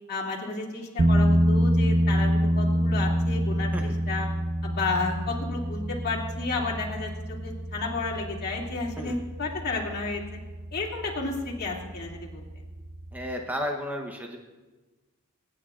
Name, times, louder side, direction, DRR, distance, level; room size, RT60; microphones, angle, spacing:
voice 1, 0.1-4.3 4.6-10.2 10.7-12.4, left 3 dB, 45° left, -3 dB, 2.5 m, -32 dB
sound 1, 1.0-13.3, equal, 45° right, 0.6 m, -27 dB
voice 2, 13.1-14.4, equal, 10° right, 2 dB, 0.9 m, -33 dB
24.5 x 9.8 x 2.5 m, 1.2 s
head